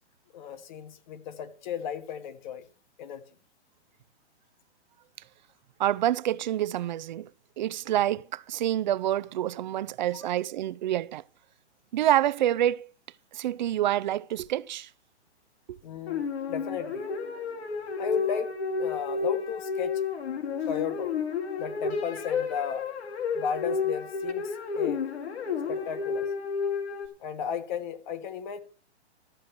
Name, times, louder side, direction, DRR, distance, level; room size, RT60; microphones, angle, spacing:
voice 1, 0.3-2.7 3.0-3.2 10.1-10.3 15.8-17.1 18.0-20.0 20.6-21.1 21.6-22.9 23.3-25.0 25.7-26.3 27.2-28.6, left 7 dB, 40° left, 1.4 m, -35 dB
voice 2, 5.8-7.3 7.6-11.2 11.9-12.9 13.3-14.9 15.7-15.8, right 12 dB, 45° right, 0.5 m, -27 dB
sound 1, 16.1-27.1, left 5 dB, 65° left, 2.4 m, -31 dB
13.0 x 6.5 x 6.9 m
hypercardioid pair, 145°, 34 cm